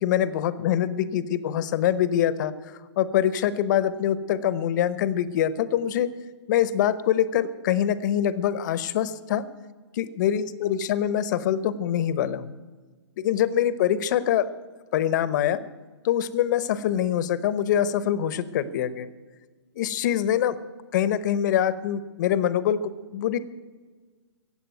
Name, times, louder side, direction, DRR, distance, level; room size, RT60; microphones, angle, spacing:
voice 1, 0.0-6.1 6.5-9.4 9.9-12.5 13.2-14.5 14.9-15.6 16.0-19.1 19.7-20.6 20.9-23.4, left 10 dB, 45° left, 16 dB, 0.9 m, -24 dB
16.0 x 8.4 x 9.2 m, 1.4 s
hypercardioid pair, 145°, 14 cm